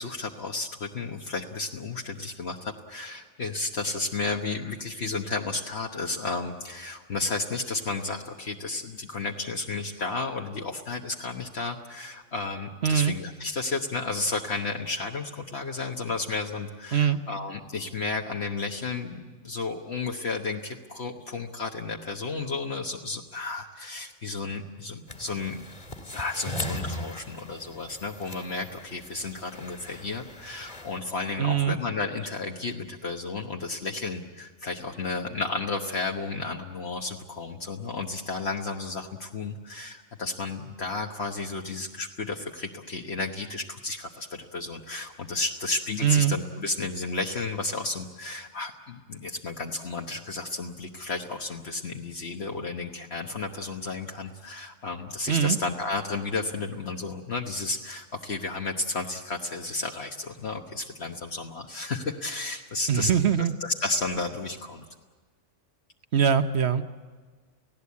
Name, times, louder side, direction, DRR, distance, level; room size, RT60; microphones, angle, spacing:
voice 1, 0.0-25.6 26.1-63.1 63.6-64.8, left 3 dB, 60° left, 2 dB, 1.5 m, -32 dB
voice 2, 12.8-13.1 16.9-17.2 31.4-31.8 46.0-46.4 55.3-55.6 62.9-63.5 66.1-66.8, right 8 dB, 65° right, 9 dB, 1.2 m, -22 dB
sound 1, 25.1-31.0, left 1 dB, 40° left, 2.2 m, -39 dB
30.0 x 16.5 x 8.5 m, 1.5 s
omnidirectional pair, 1.2 m